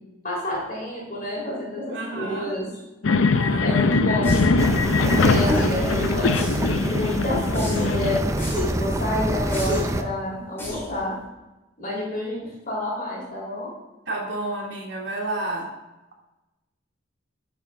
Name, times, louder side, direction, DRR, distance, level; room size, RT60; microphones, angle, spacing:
voice 1, 0.2-2.7 3.6-4.4 5.1-8.3 8.6-11.1 11.8-13.7, left 1 dB, 45° left, -4 dB, 3.6 m, -29 dB
voice 2, 1.9-2.6 3.3-3.8 4.9-5.4 14.1-15.7, right 2 dB, 60° right, -3 dB, 2.7 m, -31 dB
sound 1, 3.0-8.2, left 3 dB, 80° left, 0.6 m, -22 dB
sound 2, 4.2-4.6 5.4-5.8 6.3-6.8 7.5-8.0 8.4-8.8 9.5-10.0 10.6-11.0, equal, 10° left, 3.2 m, -28 dB
sound 3, 4.6-10.0, right 1 dB, 15° right, 0.5 m, -26 dB
12.0 x 7.1 x 3.5 m, 1.0 s
head